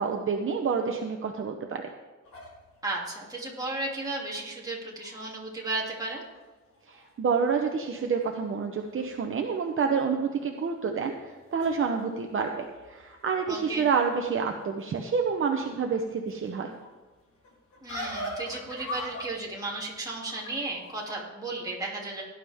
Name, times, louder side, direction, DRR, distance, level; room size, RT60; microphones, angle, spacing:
voice 1, 0.0-1.8 6.9-16.7, right 5 dB, 45° right, 3 dB, 0.9 m, -28 dB
sound 1, 2.2-5.5 5.9-6.0 6.3-7.1 7.4-9.7 10.0-10.5 11.1-21.1, equal, 90° left, 4.1 m, -44 dB
voice 2, 2.8-6.2 13.5-13.9 17.8-22.2, right 2 dB, 15° right, -4 dB, 2.6 m, -34 dB
17.5 x 11.0 x 3.5 m, 1.2 s
wide cardioid pair, 175°, 29 cm